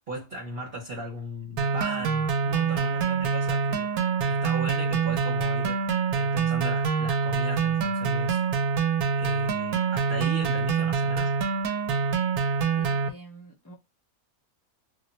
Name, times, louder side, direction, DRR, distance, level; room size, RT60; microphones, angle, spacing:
voice 1, 0.1-3.9 4.3-5.8 6.1-8.4 9.1-11.3, right 1 dB, 50° right, 1.0 m, -37 dB
sound 1, 1.6-13.1, right 5 dB, 85° right, 1.1 m, -25 dB
voice 2, 12.8-13.7, right 1 dB, 30° left, 0.3 m, -47 dB
2.5 x 2.1 x 4.0 m
omnidirectional pair, 1.5 m